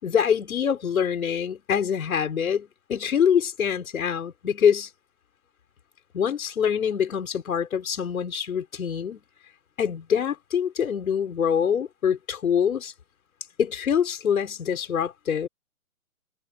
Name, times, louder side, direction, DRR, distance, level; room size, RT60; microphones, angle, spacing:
voice 1, 0.0-4.9 6.1-9.2 9.8-12.9 13.6-15.5, left 8 dB, 75° left, 6.0 m, -25 dB
hypercardioid pair, 145°, 42 cm